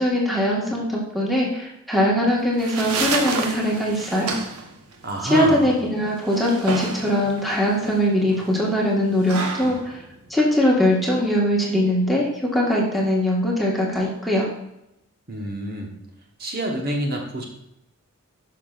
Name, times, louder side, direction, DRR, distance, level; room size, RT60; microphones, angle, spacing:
voice 1, 0.0-4.4 5.2-10.0 10.3-14.5, equal, ahead, -4 dB, 1.4 m, -21 dB
sound 1, 2.3-11.3, right 4 dB, 85° right, 1.0 m, -31 dB
voice 2, 5.0-5.7 15.3-16.0 16.4-17.4, right 1 dB, 45° right, 0 dB, 1.1 m, -27 dB
12.0 x 5.8 x 2.4 m, 0.86 s
head